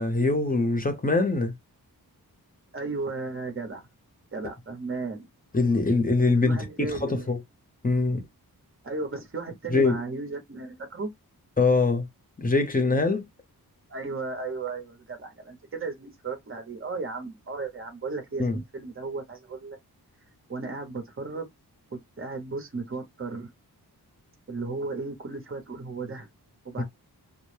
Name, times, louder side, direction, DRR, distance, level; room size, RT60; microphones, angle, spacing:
voice 1, 0.0-1.5 5.5-7.4 7.8-8.2 9.7-10.0 11.6-12.1 12.4-13.2 18.4-18.6, left 3 dB, 20° left, 0.7 m, -23 dB
voice 2, 2.7-3.8 4.3-5.3 6.4-7.4 8.8-11.1 13.9-19.8 20.5-21.5 21.9-23.5 24.5-26.3 26.6-26.8, right 3 dB, 35° right, 0.8 m, -35 dB
2.1 x 2.0 x 3.2 m
wide cardioid pair, 75°, 38 cm